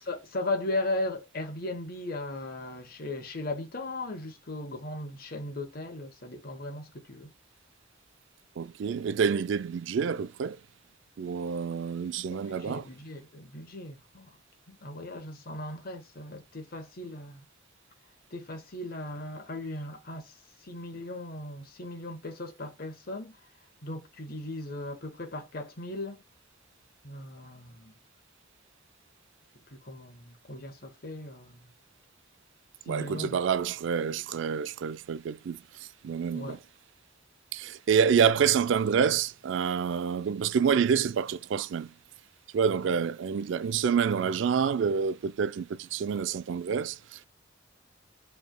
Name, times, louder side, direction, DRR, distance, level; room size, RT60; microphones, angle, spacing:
voice 1, 0.0-7.3 12.3-14.4 14.7-17.4 18.3-23.4 23.8-26.2 27.0-27.9 29.7-31.6 32.9-33.4 34.1-34.2 36.3-36.6, left 2 dB, 50° left, 1.1 m, -37 dB
voice 2, 8.6-10.6 11.2-12.8 32.9-35.6 36.0-36.6 37.5-41.9 42.5-47.3, right 7 dB, 70° right, 0.3 m, -27 dB
5.0 x 3.3 x 2.2 m
head